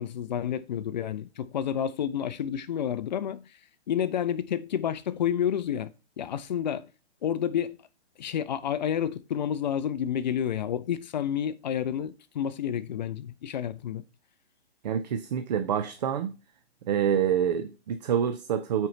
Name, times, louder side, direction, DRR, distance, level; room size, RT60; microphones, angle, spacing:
voice 1, 0.0-3.4 3.9-5.9 6.2-6.9 7.2-7.8 8.2-14.0, left 9 dB, 45° left, 0.6 m, -30 dB
voice 2, 14.8-16.3 16.9-18.9, right 8 dB, 40° right, 0.6 m, -27 dB
8.7 x 4.6 x 4.1 m
hypercardioid pair, 155°, 33 cm